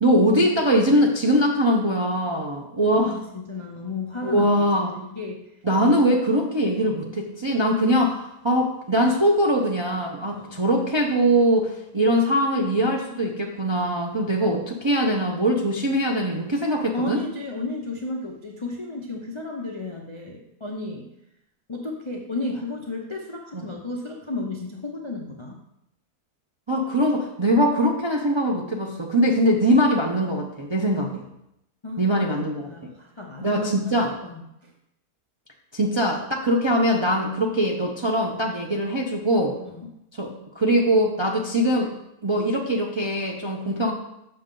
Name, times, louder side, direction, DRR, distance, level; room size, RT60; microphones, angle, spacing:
voice 1, 0.0-3.1 4.2-4.9 5.6-17.2 23.5-23.6 26.7-31.2 32.0-32.7 33.4-34.1 35.7-39.6 40.2-40.3 40.5-41.9 42.2-43.9, equal, 35° right, -1 dB, 0.4 m, -22 dB
voice 2, 2.9-4.6 4.9-5.4 10.3-10.6 16.9-21.1 21.7-25.6 31.8-32.1 32.7-34.7 39.6-39.9, left 2 dB, 35° left, 0 dB, 0.4 m, -33 dB
6.6 x 6.6 x 3.8 m, 0.83 s
omnidirectional pair, 1.6 m